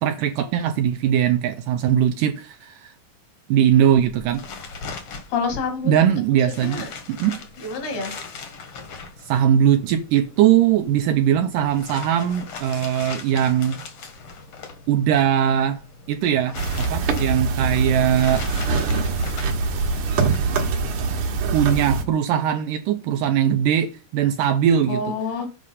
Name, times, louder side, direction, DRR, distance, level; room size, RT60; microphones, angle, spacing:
voice 1, 0.0-2.9 3.5-4.4 5.9-7.4 9.3-13.8 14.9-15.8 16.1-18.5 21.5-25.2, right 9 dB, 80° right, 2.0 m, -20 dB
sound 1, 3.9-21.2, left 4 dB, 50° left, 1.7 m, -40 dB
voice 2, 5.3-6.1 6.5-6.9 7.6-8.2 24.9-25.5, left 4 dB, 80° left, 4.0 m, -28 dB
sound 2, 16.6-22.0, right 4 dB, 60° right, 2.5 m, -23 dB
7.9 x 4.9 x 5.5 m
omnidirectional pair, 4.4 m